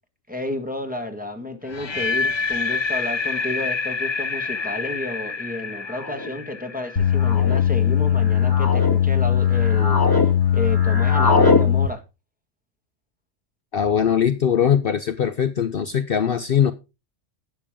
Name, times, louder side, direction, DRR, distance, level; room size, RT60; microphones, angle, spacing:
voice 1, 0.3-12.0, left 1 dB, 5° right, 1.7 m, -31 dB
sound 1, 1.7-7.7, left 4 dB, 35° left, 0.4 m, -27 dB
sound 2, 3.6-3.7 4.7-5.0 5.9-6.3 7.2-7.6 8.2-8.9 9.4-10.3 10.5-11.6, left 2 dB, 20° left, 1.8 m, -23 dB
sound 3, 7.0-11.9, left 9 dB, 80° left, 2.0 m, -19 dB
voice 2, 13.7-16.7, left 8 dB, 55° left, 0.8 m, -21 dB
12.0 x 8.5 x 3.7 m
omnidirectional pair, 1.3 m